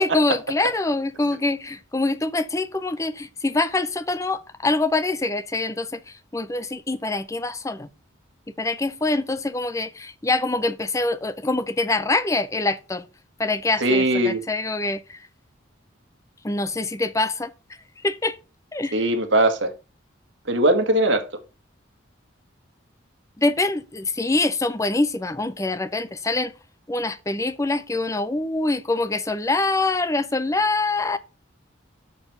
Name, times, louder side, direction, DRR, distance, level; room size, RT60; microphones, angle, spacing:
voice 1, 0.0-6.0 6.3-7.9 8.6-13.0 13.4-15.0 16.4-17.5 18.0-18.4 18.7-19.1 23.4-26.5 26.9-31.2, left 2 dB, 15° left, 0.5 m, -24 dB
voice 2, 13.8-14.4 18.9-19.7 20.5-21.2, right 1 dB, 65° right, 1.4 m, -19 dB
7.0 x 4.5 x 5.3 m
head